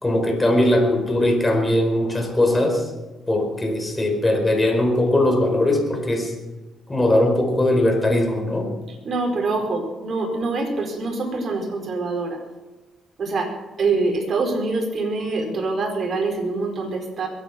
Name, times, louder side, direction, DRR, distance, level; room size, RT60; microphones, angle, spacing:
voice 1, 0.0-2.9 3.3-6.3 6.9-8.7, left 1 dB, 15° left, 3 dB, 4.4 m, -20 dB
voice 2, 9.0-12.4 13.2-13.5 13.8-17.3, right 3 dB, 50° right, 2 dB, 4.7 m, -25 dB
22.0 x 9.3 x 5.9 m, 1.1 s
cardioid pair, 90°, 0 cm